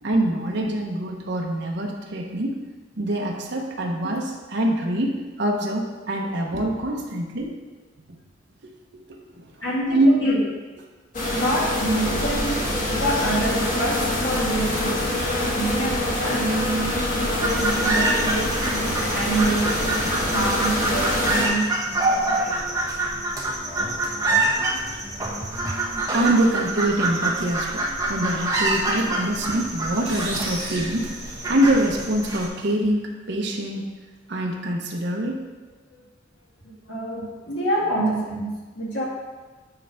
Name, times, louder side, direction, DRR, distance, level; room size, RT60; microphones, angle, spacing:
voice 1, 0.0-2.5 3.0-7.6 8.1-8.2 8.6-9.0 9.3-10.1 12.0-12.1 26.1-31.1 31.5-33.9 34.3-35.4, right 1 dB, 60° right, 0 dB, 0.9 m, -24 dB
voice 2, 9.6-10.4 11.3-12.7 13.0-15.0 15.5-16.9 17.4-18.6 19.1-19.7 20.1-22.6 25.6-25.7 36.9-39.0, right 1 dB, 65° left, -4 dB, 2.1 m, -26 dB
sound 1, 11.1-21.5, left 1 dB, 45° left, 1.6 m, -25 dB
woman cooking rural kitchen, 17.4-32.5, right 2 dB, 20° right, 1.1 m, -26 dB
sound 2, 30.0-32.0, right 2 dB, 35° right, 2.2 m, -34 dB
9.1 x 3.4 x 5.6 m, 1.3 s
head